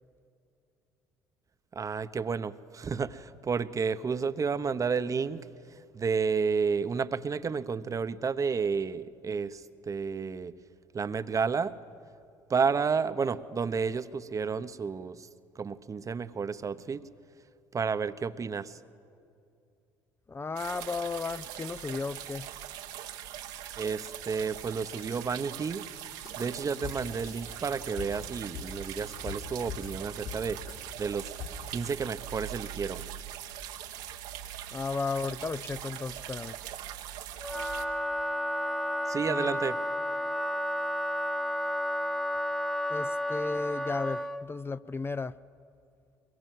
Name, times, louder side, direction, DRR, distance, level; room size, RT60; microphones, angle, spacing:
voice 1, 1.7-5.5 5.9-10.5 10.9-11.8 12.5-15.3 15.6-17.0 17.7-18.8 23.8-25.9 26.4-30.7 31.0-31.3 31.7-33.1 39.1-39.8, right 5 dB, 35° right, 0.9 m, -31 dB
voice 2, 20.3-22.5 34.7-36.6 39.3-39.6 42.9-45.4, left 4 dB, 25° left, 0.5 m, -34 dB
sound 1, 20.6-37.9, right 11 dB, 80° right, 1.3 m, -42 dB
sound 2, 25.0-25.2 26.2-26.5 26.8-29.4 29.7-30.4 30.7-31.5, left 6 dB, 80° left, 7.5 m, -42 dB
Wind instrument woodwind instrument, 37.4-44.4, left 1 dB, 5° left, 0.8 m, -31 dB
22.5 x 22.0 x 7.7 m
hypercardioid pair, 65°, 10 cm